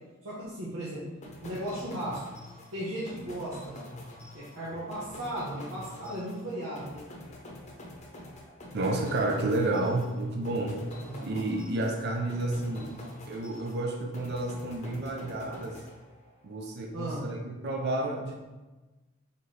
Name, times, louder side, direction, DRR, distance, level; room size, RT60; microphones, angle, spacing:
voice 1, 0.2-1.0 1.4-2.2 2.7-3.7 4.3-7.0 11.0-11.3 16.9-17.2, right 1 dB, 90° right, -8 dB, 1.0 m, -36 dB
sound 1, 1.2-16.5, left 1 dB, 35° left, 0.7 m, -46 dB
voice 2, 8.7-10.8 11.2-13.0 13.3-15.8 16.4-18.4, right 2 dB, 50° right, 1 dB, 0.5 m, -30 dB
4.3 x 3.8 x 3.2 m, 1.2 s
head